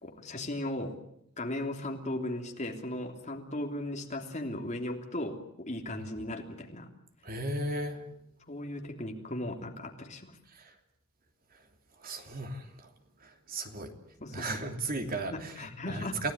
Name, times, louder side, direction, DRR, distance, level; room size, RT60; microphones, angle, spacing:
voice 1, 0.0-1.0 1.4-5.4 5.7-6.9 8.5-10.4 14.2-14.6 15.3-16.2, left 1 dB, 35° left, 3 dB, 3.2 m, -37 dB
voice 2, 7.2-8.0 10.5-10.7 12.0-12.9 13.2-13.9 14.3-16.3, right 2 dB, 40° right, 5 dB, 3.0 m, -36 dB
29.0 x 17.0 x 9.8 m, 0.76 s
head